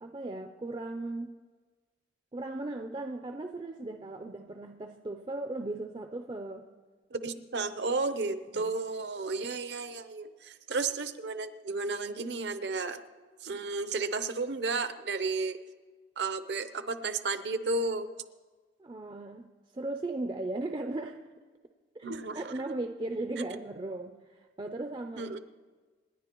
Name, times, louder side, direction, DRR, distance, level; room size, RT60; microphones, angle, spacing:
voice 1, 0.0-1.3 2.3-6.7 8.5-8.7 18.8-19.5 19.7-21.2 21.9-25.3, right 2 dB, 25° right, 5 dB, 0.4 m, -37 dB
voice 2, 7.1-13.0 13.4-15.6 16.2-18.1 22.0-22.4 25.2-25.4, right 3 dB, 70° right, 10 dB, 0.7 m, -33 dB
27.0 x 10.5 x 3.0 m, 1.4 s
head